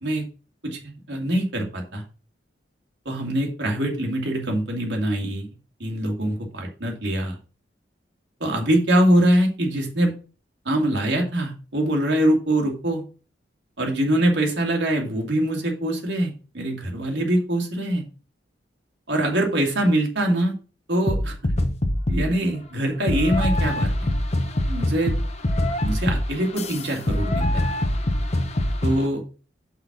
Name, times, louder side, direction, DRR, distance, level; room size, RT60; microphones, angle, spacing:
voice 1, 0.6-2.0 3.1-5.5 5.8-7.4 8.4-10.1 10.7-13.0 13.8-18.0 19.1-20.5 20.9-21.5 22.1-24.1 24.7-25.1 25.8-27.6 28.8-29.2, right 1 dB, 75° right, 1 dB, 2.2 m, -23 dB
sound 1, 21.1-22.4 23.1-29.0, left 1 dB, 40° left, 0.8 m, -24 dB
5.8 x 5.3 x 5.9 m, 0.35 s
head